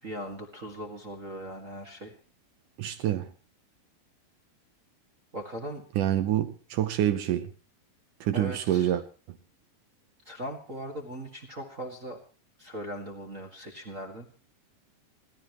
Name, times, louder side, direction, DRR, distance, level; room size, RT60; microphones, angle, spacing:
voice 1, 0.0-2.1 5.3-5.8 8.3-8.9 10.2-12.2 12.6-14.3, equal, 35° right, 1.4 m, -39 dB
voice 2, 2.8-3.3 6.0-7.5 8.2-9.0 9.3-9.4, right 12 dB, 70° right, 2.2 m, -27 dB
28.5 x 13.0 x 3.1 m
omnidirectional pair, 4.4 m